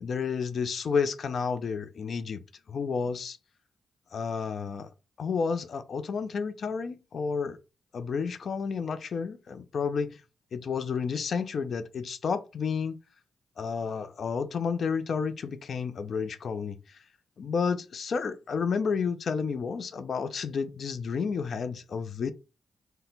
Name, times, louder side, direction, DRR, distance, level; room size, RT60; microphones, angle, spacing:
voice 1, 0.0-2.4 2.7-3.4 4.1-4.9 5.2-7.6 7.9-10.2 10.5-13.0 13.6-17.0 17.4-22.3, left 5 dB, 60° left, 0.4 m, -31 dB
4.0 x 2.1 x 3.9 m
supercardioid pair, 45°, 0 cm